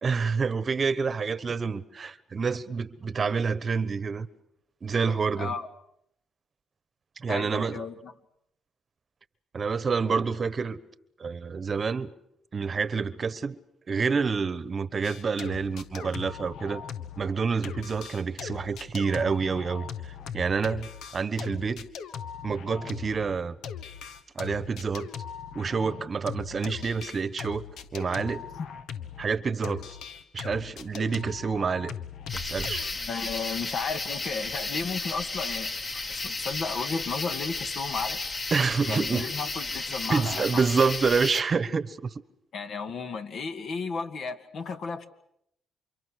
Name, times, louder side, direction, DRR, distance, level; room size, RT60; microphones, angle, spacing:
voice 1, 0.0-4.3 4.8-5.5 7.2-7.8 9.5-10.8 11.2-12.1 12.5-13.6 13.9-16.8 17.2-19.8 20.3-20.9 21.1-21.9 22.4-23.6 24.3-25.1 25.5-27.6 27.9-28.4 29.2-29.8 30.3-31.9 32.4-32.8 38.5-39.3 40.1-42.1, right 5 dB, 40° right, 1.1 m, -28 dB
voice 2, 5.4-5.7 7.3-8.1 32.9-35.7 36.1-38.2 38.9-40.6 42.5-45.1, left 5 dB, 60° left, 2.1 m, -33 dB
sound 1, 15.0-17.4 17.6-29.3 29.6-32.9, left 7 dB, 80° left, 1.3 m, -40 dB
sound 2, 32.3-41.4, left 3 dB, 40° left, 2.6 m, -33 dB
29.0 x 24.5 x 6.5 m
cardioid pair, 90°, 0 cm